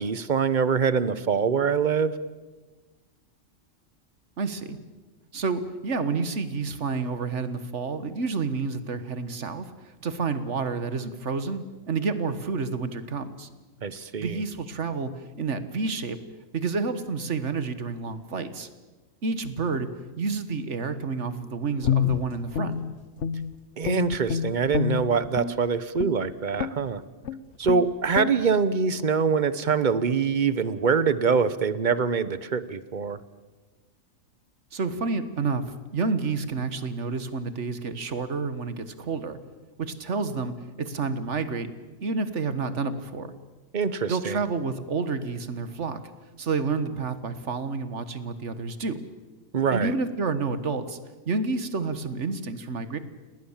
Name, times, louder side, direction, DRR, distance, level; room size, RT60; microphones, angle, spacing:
voice 1, 0.0-2.1 13.8-14.4 23.8-27.0 27.6-33.2 43.7-44.4 49.5-49.9, right 5 dB, 40° right, 15 dB, 1.0 m, -24 dB
voice 2, 4.4-4.8 5.3-9.7 10.0-13.5 14.2-15.1 15.4-16.2 16.5-18.7 19.2-19.9 20.2-22.8 34.7-39.4 39.8-41.7 42.0-43.3 44.1-46.0 46.4-49.0 49.7-51.0 51.3-53.0, right 4 dB, 60° right, 11 dB, 1.7 m, -29 dB
Guitar, 21.8-23.6 23.8-25.6 26.0-26.2 26.6-26.9 27.2-27.4 27.6-27.9 28.1-28.3, left 8 dB, 60° left, 1.2 m, -27 dB
29.5 x 18.5 x 7.3 m, 1.2 s
omnidirectional pair, 1.4 m